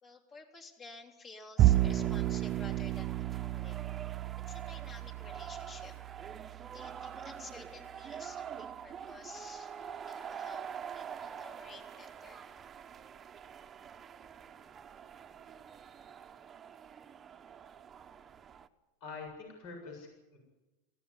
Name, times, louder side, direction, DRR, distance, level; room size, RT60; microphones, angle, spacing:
voice 1, 0.0-3.8 4.5-6.0 6.7-9.7 10.0-10.7 10.9-12.5, left 3 dB, 35° left, 2 dB, 3.5 m, -52 dB
sound 1, 1.6-18.7, right 8 dB, 25° right, 1.1 m, -46 dB
Bowed string instrument, 1.6-8.0, right 14 dB, 40° right, 0.6 m, -32 dB
voice 2, 19.0-20.4, left 4 dB, 60° left, 2 dB, 7.4 m, -45 dB
19.0 x 16.0 x 9.8 m, 1.1 s
supercardioid pair, 120°, 0 cm